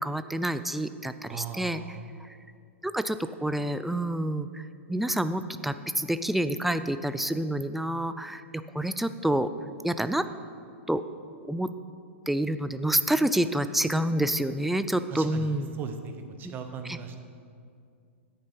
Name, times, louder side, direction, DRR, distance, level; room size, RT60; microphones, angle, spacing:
voice 1, 0.0-2.3 2.8-9.5 9.8-10.3 10.9-11.1 11.4-11.7 12.3-15.7 16.4-16.5 16.9-17.0, right 1 dB, ahead, 12 dB, 0.4 m, -28 dB
voice 2, 1.3-2.0 15.1-16.1 16.4-17.2, right 6 dB, 25° right, 6 dB, 1.0 m, -38 dB
9.9 x 8.4 x 5.4 m, 2.3 s
figure-of-eight pair, 105°, 7 cm